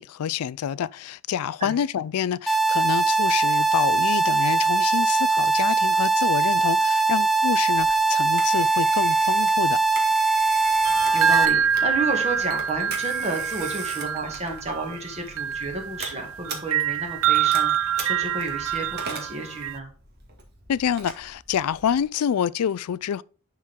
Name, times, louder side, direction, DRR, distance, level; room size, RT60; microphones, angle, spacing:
voice 1, 0.0-9.8 20.7-23.2, left 8 dB, 80° left, 0.3 m, -27 dB
sound 1, 2.5-11.5, right 3 dB, ahead, 0.5 m, -21 dB
Telephone, 7.8-22.0, right 4 dB, 45° right, 2.0 m, -41 dB
voice 2, 10.5-10.8 11.1-19.9, right 2 dB, 30° right, 2.1 m, -31 dB
sound 2, 10.8-19.8, right 8 dB, 65° right, 0.5 m, -26 dB
10.5 x 4.5 x 3.6 m
head